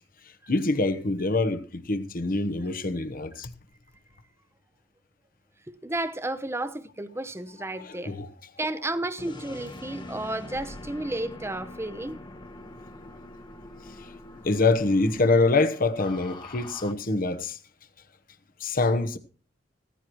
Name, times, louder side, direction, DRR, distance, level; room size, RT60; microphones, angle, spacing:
voice 1, 0.5-3.5 7.7-8.3 14.0-14.1 14.4-17.6 18.6-19.2, left 3 dB, 50° left, 1.0 m, -25 dB
voice 2, 5.7-8.1 8.6-12.2, right 1 dB, 15° right, 0.8 m, -32 dB
sound 1, 9.2-16.9, left 2 dB, 25° left, 1.1 m, -44 dB
16.0 x 14.5 x 3.1 m
head